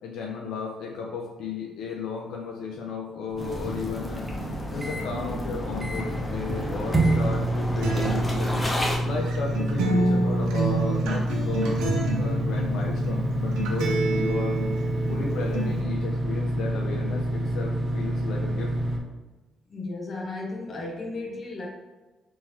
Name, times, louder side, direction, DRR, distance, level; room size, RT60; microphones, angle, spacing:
voice 1, 0.0-4.2 4.7-8.5 9.0-14.6 15.1-18.7, left 4 dB, 80° left, -1 dB, 0.5 m, -34 dB
sound 1, 3.3-5.1 5.5-5.6 5.8-6.3 6.9-19.0, right 1 dB, 25° right, 0.7 m, -27 dB
sound 2, 3.4-9.0, left 1 dB, 20° left, 0.8 m, -31 dB
Acoustic guitar, 7.8-15.8, right 2 dB, 90° right, 0.7 m, -28 dB
voice 2, 19.7-21.7, left 2 dB, 40° left, -1 dB, 1.0 m, -34 dB
3.6 x 3.1 x 3.0 m, 1.1 s
cardioid pair, 90°, 0 cm